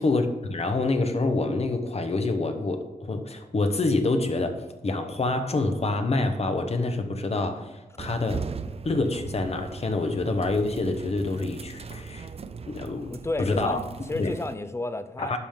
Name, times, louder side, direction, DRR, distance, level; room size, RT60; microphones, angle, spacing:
voice 1, 0.0-8.4 8.8-12.3 12.7-13.1 13.4-13.8 14.1-14.3 15.2-15.4, left 2 dB, 45° left, 7 dB, 1.0 m, -27 dB
sound 1, 8.0-14.5, right 5 dB, 40° right, 0.5 m, -39 dB
voice 2, 13.1-15.4, left 2 dB, 15° left, 11 dB, 0.5 m, -32 dB
11.0 x 5.1 x 3.7 m, 1.1 s
wide cardioid pair, 110°, 15 cm